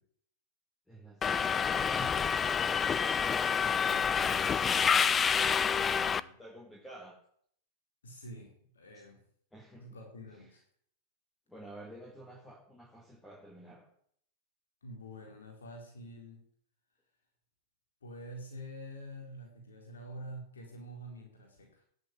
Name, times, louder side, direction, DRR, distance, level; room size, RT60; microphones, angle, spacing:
voice 1, 0.9-2.3 6.4-7.2 8.9-9.0 9.5-9.9 11.5-13.9, right 1 dB, 5° left, -1 dB, 4.2 m, -50 dB
Subway metro underground, 1.2-6.2, left 6 dB, 20° left, 0.8 m, -28 dB
voice 2, 3.7-5.2 5.8-6.4 8.0-9.3 9.8-10.6 14.8-16.5 18.0-21.8, equal, 85° left, 2 dB, 4.4 m, -48 dB
13.5 x 10.5 x 9.6 m, 0.63 s
hypercardioid pair, 105°, 0 cm